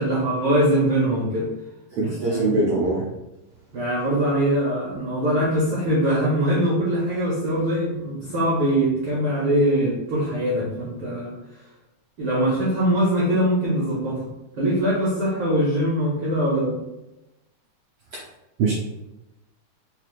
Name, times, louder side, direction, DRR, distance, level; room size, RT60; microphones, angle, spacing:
voice 1, 0.0-1.5 2.0-2.6 3.7-11.4 12.2-16.8, right 1 dB, 70° right, -6 dB, 1.2 m, -22 dB
voice 2, 1.9-3.0 18.6-18.7, right 3 dB, 85° right, -4 dB, 1.3 m, -22 dB
4.9 x 2.4 x 3.1 m, 0.94 s
omnidirectional pair, 3.5 m